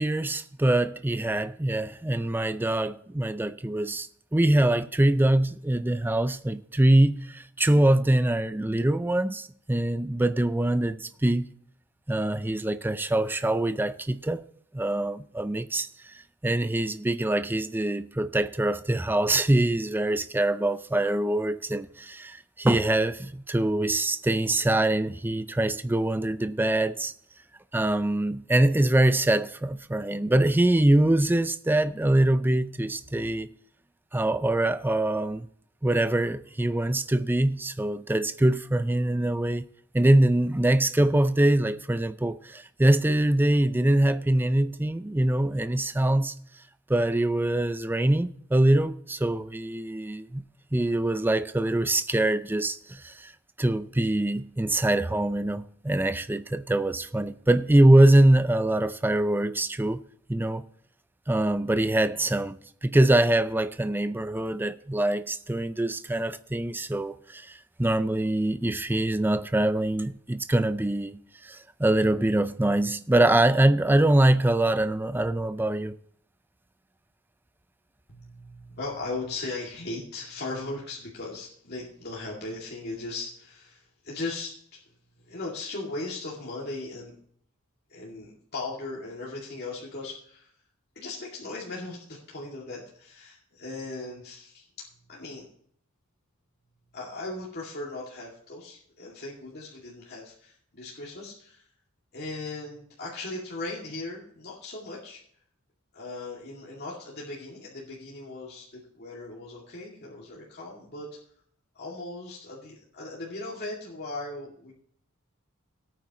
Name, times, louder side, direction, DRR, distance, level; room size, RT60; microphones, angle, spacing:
voice 1, 0.0-11.5 12.1-14.4 14.7-15.9 16.4-27.1 27.7-33.5 34.1-35.5 35.8-39.6 39.9-46.3 46.9-50.4 50.7-53.3 53.6-60.0 60.3-60.6 61.3-76.0, right 1 dB, 10° right, 0.4 m, -24 dB
voice 2, 78.1-84.8 85.2-87.2 87.9-90.5 91.0-95.5 96.9-101.6 102.1-105.2 105.9-111.1 111.7-114.7, left 2 dB, 50° left, 2.4 m, -38 dB
17.5 x 9.0 x 3.0 m
head